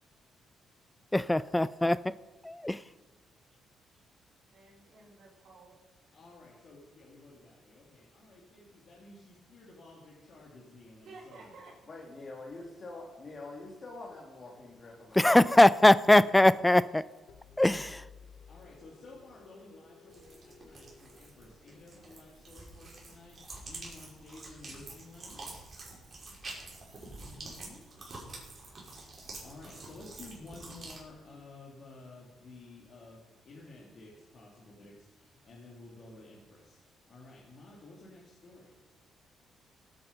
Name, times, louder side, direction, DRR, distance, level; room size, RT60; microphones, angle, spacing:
voice 1, 1.1-2.2 2.4-2.9 15.1-17.0 17.6-18.1, left 1 dB, 10° left, 18 dB, 0.3 m, -22 dB
voice 2, 4.5-5.8 11.0-11.7, right 3 dB, 65° right, -9 dB, 3.9 m, -52 dB
voice 3, 6.1-11.6 18.5-25.6 27.1-27.8 29.4-36.8 37.1-38.7, left 2 dB, 55° left, -4 dB, 3.0 m, -53 dB
voice 4, 11.9-15.7, left 2 dB, 40° left, -1 dB, 2.5 m, -46 dB
sound 1, 17.3-22.0, left 5 dB, 80° left, 1.1 m, -56 dB
sound 2, 20.1-31.0, right 2 dB, 35° right, 5.0 m, -47 dB
17.5 x 8.9 x 5.3 m, 1.2 s
cardioid pair, 90°, 0 cm